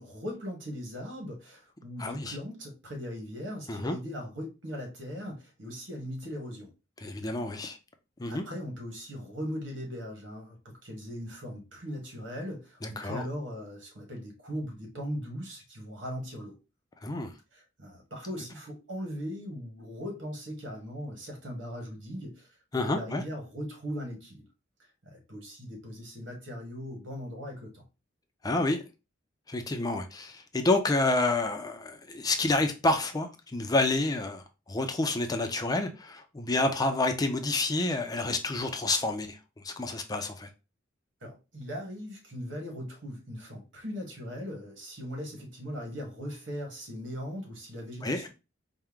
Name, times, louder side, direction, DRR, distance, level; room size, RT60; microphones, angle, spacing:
voice 1, 0.0-6.7 8.3-16.6 17.5-22.5 22.8-24.4 25.0-27.8 41.2-48.3, equal, 75° right, 1.6 m, -39 dB
voice 2, 2.0-2.4 3.7-4.0 7.0-7.8 8.2-8.4 12.8-13.2 17.0-17.3 22.7-23.2 28.4-28.8 29.5-39.4 39.6-40.5 48.0-48.3, left 2 dB, 20° left, 0.4 m, -29 dB
4.5 x 2.1 x 3.6 m
head